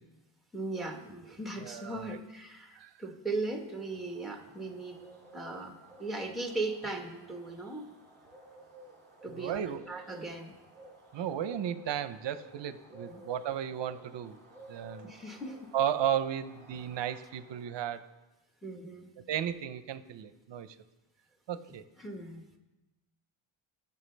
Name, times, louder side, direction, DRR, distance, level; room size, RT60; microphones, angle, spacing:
voice 1, 0.5-5.0 5.3-7.9 9.2-10.5 13.1-13.2 15.0-15.7 18.6-19.1 22.0-22.6, right 2 dB, ahead, 3 dB, 1.3 m, -38 dB
voice 2, 1.6-2.2 2.8-2.9 9.3-9.8 11.1-14.4 14.7-15.1 15.7-18.1 19.3-20.8 21.5-21.9, right 10 dB, 60° right, 12 dB, 0.7 m, -34 dB
Bird, 3.4-18.1, right 1 dB, 20° right, 2.6 m, -54 dB
19.5 x 6.8 x 3.3 m, 1.0 s
cardioid pair, 130°, 49 cm